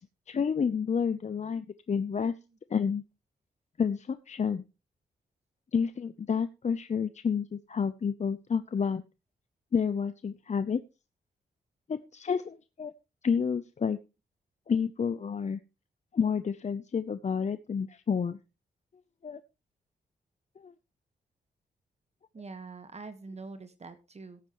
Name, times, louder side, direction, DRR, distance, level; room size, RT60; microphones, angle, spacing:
voice 1, 0.3-2.3 2.7-3.0 3.8-4.6 5.7-9.0 9.7-10.8 11.9-12.9 13.2-14.0 14.7-15.6 16.1-18.4 19.2-19.4 20.6-20.7, left 6 dB, 45° left, 13 dB, 0.7 m, -29 dB
voice 2, 22.3-24.4, right 3 dB, 40° right, 10 dB, 1.5 m, -44 dB
17.0 x 9.0 x 3.1 m, 0.28 s
cardioid pair, 65°, 17 cm